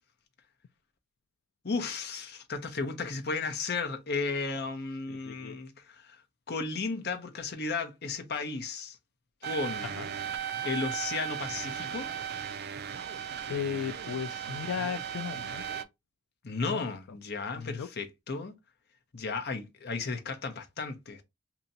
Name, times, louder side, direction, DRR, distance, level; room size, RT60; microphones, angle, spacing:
voice 1, 1.6-6.2 6.5-9.0 9.4-9.9 10.6-12.1 16.4-18.5 19.1-21.2, left 4 dB, 50° left, 0.7 m, -34 dB
voice 2, 5.1-5.6 10.0-10.1 13.5-15.6 16.7-16.8 17.6-17.9, left 7 dB, 65° left, 0.3 m, -35 dB
sound 1, 9.4-15.8, right 8 dB, 50° right, 0.4 m, -36 dB
2.8 x 2.7 x 4.0 m
head